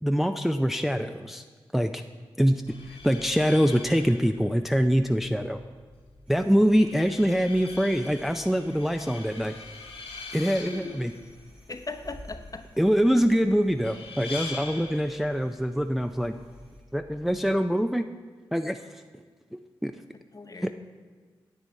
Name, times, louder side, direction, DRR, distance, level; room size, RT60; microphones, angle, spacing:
voice 1, 0.0-1.4 1.7-2.0 2.4-2.6 3.0-5.6 6.3-9.5 10.3-11.1 12.8-16.3 16.9-18.1 18.5-18.8 19.5-19.9 20.6-20.7, equal, ahead, 7 dB, 0.4 m, -24 dB
sound 1, 2.6-17.6, left 4 dB, 80° left, 2.1 m, -44 dB
sound 2, 6.2-16.8, equal, 85° right, 3.1 m, -54 dB
voice 2, 10.3-11.0 11.7-12.7 20.3-20.7, left 3 dB, 40° left, 7 dB, 0.8 m, -39 dB
9.7 x 8.0 x 4.2 m, 1.4 s
supercardioid pair, 40°, 10 cm